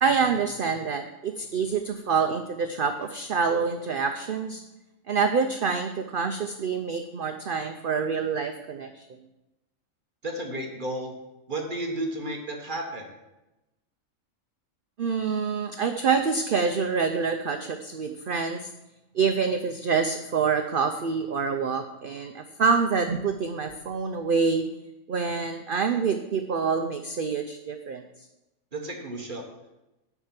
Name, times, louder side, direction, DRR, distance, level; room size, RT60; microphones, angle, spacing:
voice 1, 0.0-4.6 5.1-9.0 15.0-18.7 19.1-24.6 25.1-28.0, right 5 dB, 55° right, 6 dB, 0.6 m, -26 dB
voice 2, 10.2-11.1 11.5-13.1 28.7-29.4, right 1 dB, 40° right, 1 dB, 1.5 m, -32 dB
8.0 x 5.8 x 7.3 m, 0.97 s
omnidirectional pair, 1.4 m